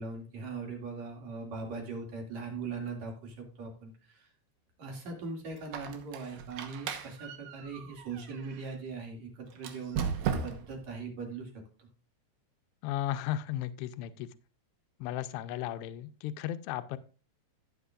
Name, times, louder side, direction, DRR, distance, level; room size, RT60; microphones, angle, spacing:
voice 1, 0.0-4.3 4.8-11.5 11.8-11.9, right 4 dB, 45° right, 1 dB, 3.1 m, -40 dB
Squeak, 5.6-8.8 9.6-10.8, right 7 dB, 70° right, 2.6 m, -37 dB
voice 2, 12.8-14.3 15.0-17.0, left 12 dB, 85° left, 10 dB, 2.6 m, -35 dB
15.0 x 8.0 x 2.5 m, 0.36 s
omnidirectional pair, 5.0 m